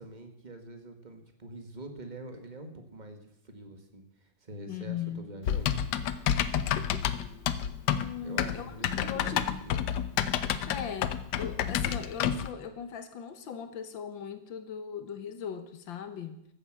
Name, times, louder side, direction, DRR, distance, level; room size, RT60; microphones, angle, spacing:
voice 1, 0.0-3.2 3.4-5.8 8.2-9.8, right 1 dB, 25° right, 5 dB, 1.8 m, -45 dB
voice 2, 4.7-5.3 7.9-8.7 9.0-9.5 10.7-16.5, left 8 dB, 90° left, 9 dB, 2.0 m, -39 dB
Typing, 5.5-12.5, left 9 dB, 70° left, 1.3 m, -29 dB
14.5 x 8.7 x 7.5 m, 0.76 s
omnidirectional pair, 2.0 m